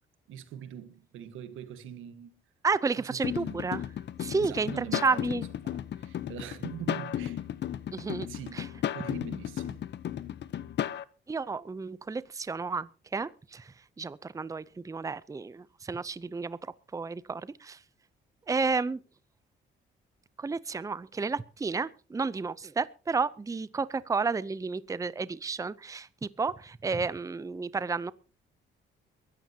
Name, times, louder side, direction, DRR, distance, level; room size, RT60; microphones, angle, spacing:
voice 1, 0.3-2.4 3.0-3.8 4.4-7.5 8.3-9.8, right 10 dB, 90° right, 1.5 m, -43 dB
voice 2, 2.6-3.8 4.2-5.4 7.9-8.3 8.5-8.6 11.3-17.8 18.5-19.0 20.4-28.1, right 4 dB, 15° right, 0.6 m, -32 dB
sound 1, 3.2-11.0, left 10 dB, 60° left, 0.9 m, -34 dB
23.0 x 13.5 x 2.8 m
cardioid pair, 90°, 20 cm